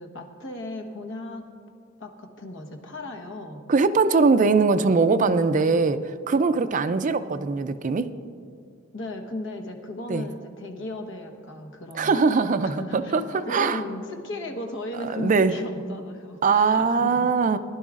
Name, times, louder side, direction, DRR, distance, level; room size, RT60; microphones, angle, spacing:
voice 1, 0.0-1.5 2.0-3.7 8.9-12.1 12.6-17.6, left 1 dB, 65° left, 3 dB, 1.2 m, -36 dB
voice 2, 3.7-8.1 10.1-10.3 11.9-13.8 15.1-15.5 16.4-17.6, right 4 dB, 40° right, 12 dB, 0.4 m, -21 dB
19.5 x 11.5 x 2.5 m, 2.3 s
head